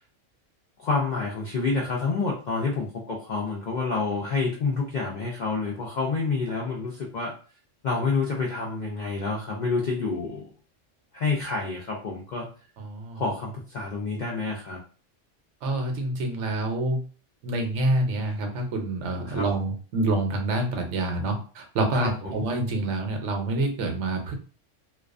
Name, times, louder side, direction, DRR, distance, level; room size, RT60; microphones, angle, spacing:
voice 1, 0.8-7.3 7.8-10.5 11.1-12.5 13.1-14.8 19.3-19.5 21.9-22.4, left 4 dB, 70° left, -2 dB, 0.4 m, -28 dB
voice 2, 12.8-13.2 15.6-17.0 17.4-24.3, right 2 dB, 75° right, 3 dB, 0.9 m, -27 dB
2.3 x 2.3 x 2.4 m, 0.38 s
omnidirectional pair, 1.3 m